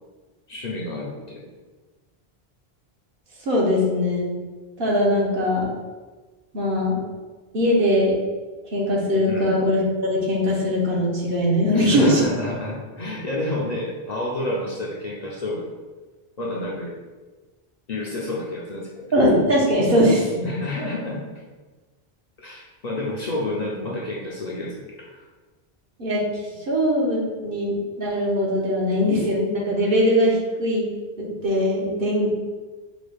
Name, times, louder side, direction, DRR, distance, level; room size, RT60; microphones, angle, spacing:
voice 1, 0.5-1.5 9.3-9.6 11.7-15.7 16.4-16.9 17.9-18.9 20.4-21.2 22.4-25.2, left 1 dB, 50° left, -3 dB, 0.6 m, -30 dB
voice 2, 3.4-4.3 4.8-5.7 6.5-7.0 7.5-8.2 8.7-12.3 19.1-20.6 26.0-26.2 26.5-30.8 31.2-32.4, equal, 60° right, -4 dB, 1.1 m, -21 dB
4.9 x 2.3 x 3.3 m, 1.3 s
omnidirectional pair, 1.0 m